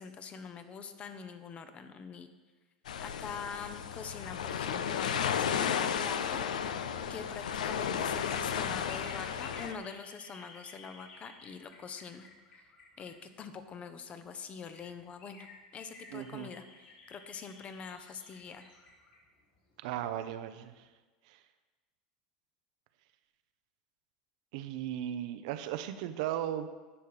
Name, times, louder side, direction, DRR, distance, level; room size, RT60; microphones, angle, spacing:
voice 1, 0.0-2.3 3.0-12.3 13.0-16.6 17.1-18.6, left 6 dB, 30° left, 9 dB, 0.8 m, -44 dB
sound 1, 2.9-9.7, left 8 dB, 80° left, 0.5 m, -33 dB
sound 2, 8.6-13.7 14.2-14.3 14.5-20.3 20.7-20.8, left 3 dB, 50° left, 3.3 m, -54 dB
voice 2, 16.1-16.5 19.8-20.9 21.3-21.4 24.5-26.7, right 11 dB, 65° right, 10 dB, 0.6 m, -36 dB
10.0 x 5.7 x 4.9 m, 1.3 s
hypercardioid pair, 95°, 4 cm